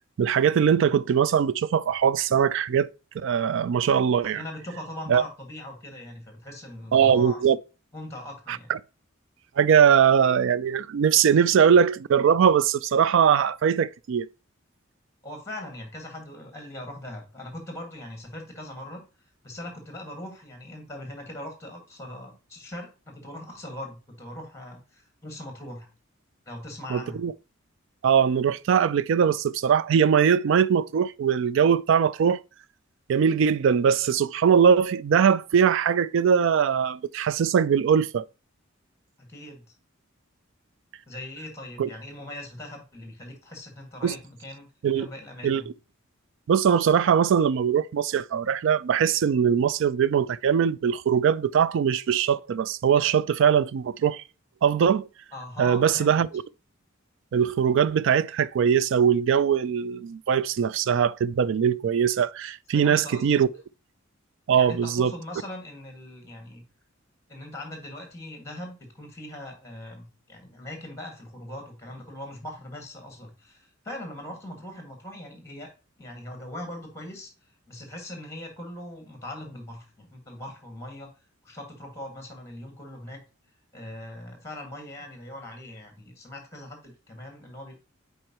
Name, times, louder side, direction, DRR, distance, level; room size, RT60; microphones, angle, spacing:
voice 1, 0.2-2.9 3.2-4.4 5.1-5.2 6.9-7.6 8.5-8.8 9.6-14.3 26.9-27.3 28.0-32.4 33.1-38.3 41.8-41.9 44.0-44.1 44.8-45.1 45.4-45.6 46.5-54.2 54.6-55.1 55.6-56.4 57.3-63.5 64.5-65.1, right 7 dB, 65° right, 0.3 m, -21 dB
voice 2, 4.3-7.4 7.9-8.7 15.2-19.0 19.4-25.9 26.5-27.3 39.2-39.7 41.1-44.7 44.9-45.7 55.3-56.2 62.7-63.4 64.6-66.6 67.3-75.7 76.0-77.3 77.7-81.1 81.4-83.2 83.7-87.7, left 1 dB, 15° left, 1.8 m, -40 dB
7.7 x 4.5 x 2.9 m
head